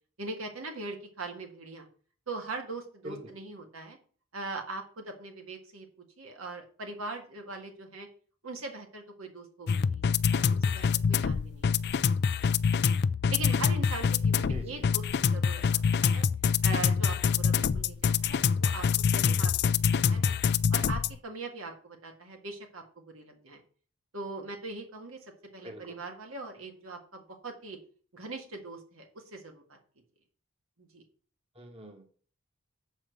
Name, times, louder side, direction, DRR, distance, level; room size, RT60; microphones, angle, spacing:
voice 1, 0.2-1.9 2.3-4.0 4.3-5.9 6.2-8.1 8.4-10.0 10.3-11.7 12.0-12.2 12.4-12.9 13.3-16.2 16.6-20.3 20.7-23.6 24.1-25.2 25.5-27.8 28.1-29.8 30.8-31.0, right 3 dB, 75° right, 3 dB, 1.8 m, -41 dB
sound 1, 9.7-21.2, left 6 dB, 50° left, 0.4 m, -26 dB
voice 2, 14.5-14.9 25.6-26.0 31.5-32.0, equal, 30° right, 3 dB, 1.5 m, -44 dB
7.3 x 4.7 x 6.9 m, 0.43 s
head